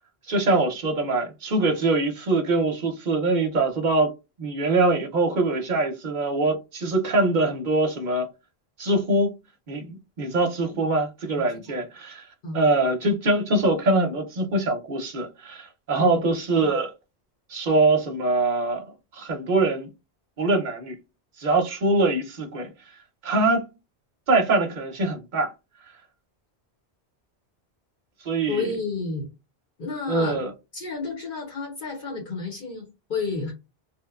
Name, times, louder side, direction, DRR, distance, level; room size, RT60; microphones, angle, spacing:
voice 1, 0.3-4.1 4.4-8.3 8.8-9.3 9.7-12.3 12.5-16.9 17.5-18.8 19.1-19.9 20.4-21.0 21.4-22.7 23.2-23.6 24.3-25.5 28.2-28.7 30.1-30.5, right 2 dB, 50° right, 0.7 m, -23 dB
voice 2, 28.5-29.3 29.8-30.4 30.7-33.5, left 4 dB, 55° left, 1.0 m, -31 dB
2.9 x 2.1 x 2.3 m
omnidirectional pair, 1.1 m